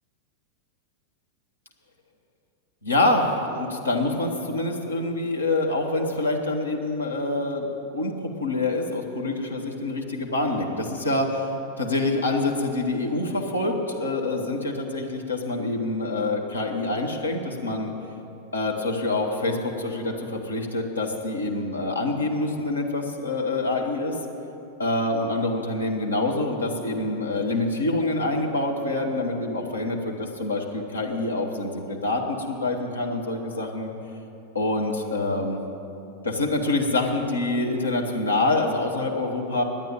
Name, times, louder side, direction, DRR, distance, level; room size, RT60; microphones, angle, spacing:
voice 1, 2.8-11.5 11.8-17.9 18.5-24.1 24.8-33.9 34.5-35.6 36.2-39.6, left 2 dB, 75° left, 0 dB, 1.3 m, -26 dB
10.5 x 8.9 x 8.7 m, 2.9 s
figure-of-eight pair, 90°, 0 cm